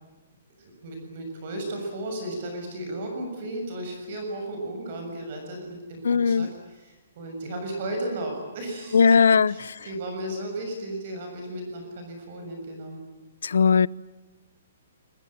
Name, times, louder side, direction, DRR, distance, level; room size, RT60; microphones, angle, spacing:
voice 1, 0.6-13.0, right 1 dB, 35° right, 6.8 m, -35 dB
voice 2, 6.0-6.5 8.9-9.8 13.4-13.9, left 6 dB, 80° left, 0.9 m, -19 dB
28.5 x 23.5 x 8.9 m
hypercardioid pair, 180°, 0 cm